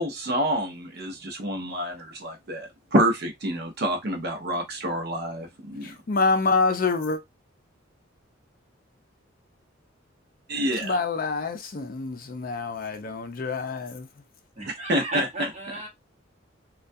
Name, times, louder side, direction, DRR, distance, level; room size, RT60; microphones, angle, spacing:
voice 1, 0.0-5.9 10.5-10.9 14.9-15.2, right 1 dB, 55° right, 0.6 m, -27 dB
voice 2, 5.8-7.2 10.7-14.1, left 3 dB, 45° left, 0.4 m, -26 dB
voice 3, 14.6-15.9, right 1 dB, 35° right, 0.9 m, -32 dB
2.3 x 2.2 x 2.6 m
head